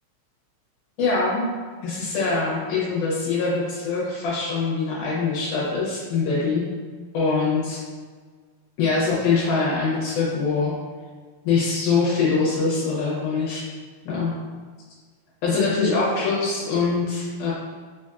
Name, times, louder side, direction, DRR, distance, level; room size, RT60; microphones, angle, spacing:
voice 1, 1.0-1.5 1.8-6.7 7.1-7.8 8.8-10.7 11.4-13.6 14.1-14.3 15.4-17.5, left 4 dB, 75° left, -7 dB, 2.1 m, -23 dB
5.1 x 2.5 x 2.3 m, 1.5 s
omnidirectional pair, 4.0 m